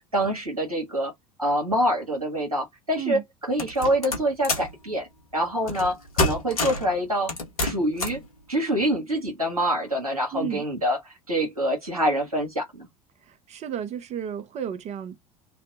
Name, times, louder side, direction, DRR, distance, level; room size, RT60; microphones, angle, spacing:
voice 1, 0.1-1.1 1.4-5.1 5.3-7.3 7.6-8.2 8.5-12.9, equal, 90° right, 1.2 m, -26 dB
sound 1, 3.6-4.7 5.7-5.9 6.2-6.9 7.3-8.2, left 2 dB, 80° left, 1.2 m, -27 dB
voice 2, 10.3-10.6 13.3-15.2, right 9 dB, 40° right, 0.9 m, -32 dB
3.3 x 2.3 x 3.8 m
figure-of-eight pair, 70°, 18 cm